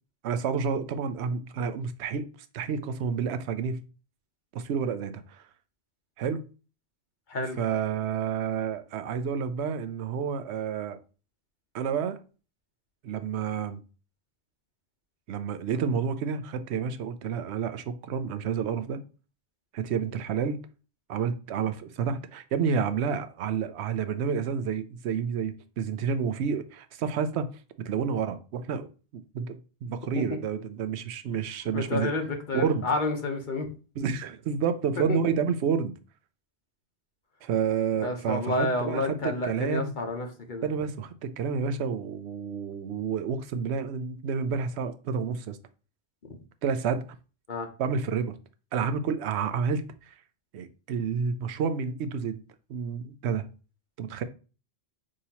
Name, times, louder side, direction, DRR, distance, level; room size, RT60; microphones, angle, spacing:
voice 1, 0.2-2.3 2.5-3.8 4.5-5.4 6.2-6.4 7.6-11.0 11.7-12.2 13.0-13.8 15.3-19.0 19.7-20.6 21.1-27.5 27.8-32.1 32.5-32.9 34.0-35.9 37.4-39.9 40.6-45.6 46.6-47.1 47.8-48.4 48.7-50.1 50.5-52.4 52.7-53.5 54.0-54.2, right 6 dB, 90° right, 0.9 m, -29 dB
voice 2, 31.7-33.7 35.1-35.2 38.0-40.7 46.3-46.4 47.5-47.7, left 2 dB, 50° left, 1.0 m, -30 dB
6.2 x 2.8 x 2.8 m
omnidirectional pair, 1.1 m